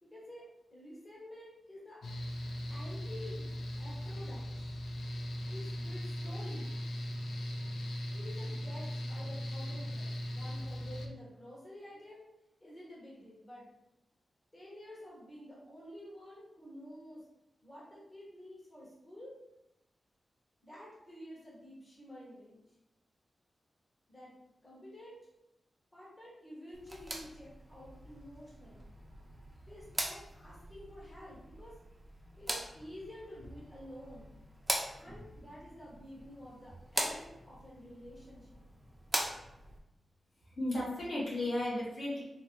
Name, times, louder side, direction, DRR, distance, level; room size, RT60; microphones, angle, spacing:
voice 1, 0.0-2.0 2.7-3.5 3.8-4.5 5.5-6.7 8.1-12.2 12.6-13.7 14.5-17.3 17.6-19.3 20.6-22.6 24.1-24.3 24.6-25.2 25.9-28.8 29.7-31.8 32.4-34.4 35.0-38.6, left 1 dB, 25° left, -7 dB, 1.1 m, -50 dB
Mechanical fan, 2.0-11.1, equal, 85° left, 0.4 m, -39 dB
sound 1, 26.7-39.8, right 1 dB, 15° right, 0.4 m, -42 dB
voice 2, 40.5-42.2, left 1 dB, 55° left, -6 dB, 1.1 m, -34 dB
3.2 x 2.8 x 3.1 m, 0.89 s
wide cardioid pair, 145°, 0 cm